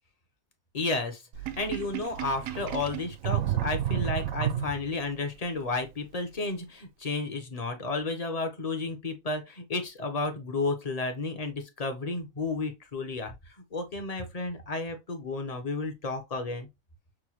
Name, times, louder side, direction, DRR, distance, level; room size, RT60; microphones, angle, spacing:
voice 1, 0.7-1.2 1.6-16.7, left 3 dB, 35° left, 0.7 m, -32 dB
Sink (filling or washing), 1.3-5.1, right 11 dB, 75° right, 1.0 m, -31 dB
6.1 x 2.2 x 3.0 m
omnidirectional pair, 1.4 m